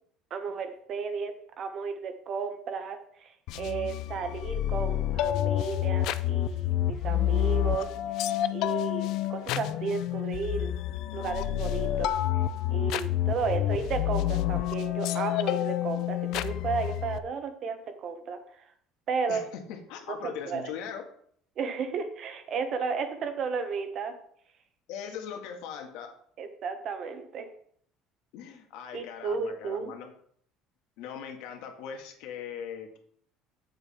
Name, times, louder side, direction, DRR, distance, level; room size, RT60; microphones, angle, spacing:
voice 1, 0.3-7.9 8.2-10.7 11.1-12.4 12.7-18.7 19.1-19.4 20.1-20.7 21.6-24.1 26.4-27.5 28.9-29.9, right 5 dB, 40° right, 8 dB, 1.1 m, -33 dB
sound 1, 3.5-17.2, left 12 dB, 60° left, 0.4 m, -29 dB
voice 2, 19.3-21.0 24.9-26.1 28.3-30.1 31.0-33.0, left 7 dB, 75° left, 3 dB, 1.8 m, -40 dB
7.6 x 7.5 x 4.4 m, 0.62 s
cardioid pair, 160°, 0 cm